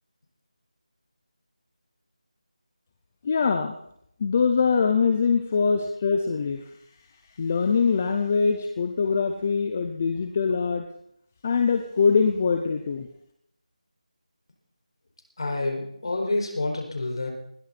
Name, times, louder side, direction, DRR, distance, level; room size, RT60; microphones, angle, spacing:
voice 1, 3.2-3.7 4.2-6.6 7.4-10.9 11.4-13.1, left 5 dB, 15° left, 6 dB, 0.6 m, -23 dB
voice 2, 15.4-17.3, left 2 dB, 45° left, 2 dB, 4.6 m, -28 dB
20.5 x 15.5 x 4.2 m, 0.71 s
figure-of-eight pair, 180°, 4 cm